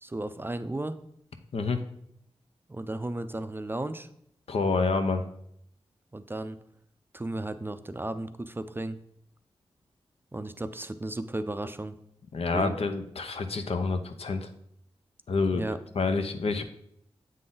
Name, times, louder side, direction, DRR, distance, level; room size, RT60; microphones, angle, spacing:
voice 1, 0.0-1.0 2.7-4.1 6.1-6.6 7.1-9.0 10.3-11.9 12.5-12.8 15.5-15.8, right 2 dB, 20° right, 11 dB, 0.4 m, -34 dB
voice 2, 4.5-5.3 12.3-14.5 15.3-15.6 16.0-16.6, left 4 dB, 70° left, 8 dB, 0.6 m, -28 dB
7.4 x 3.8 x 3.9 m, 0.71 s
cardioid pair, 50°, 11 cm